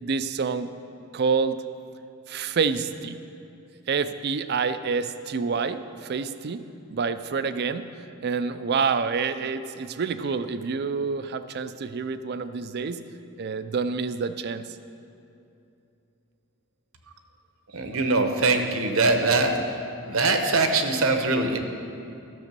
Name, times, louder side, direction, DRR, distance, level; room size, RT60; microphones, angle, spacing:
voice 1, 0.0-0.7 1.1-1.6 2.3-3.2 3.9-6.6 6.9-13.0 13.4-14.7, right 5 dB, 50° right, 11 dB, 0.4 m, -27 dB
voice 2, 17.7-19.6 20.0-21.6, right 3 dB, 65° right, 6 dB, 0.9 m, -22 dB
12.5 x 6.3 x 6.7 m, 2.7 s
head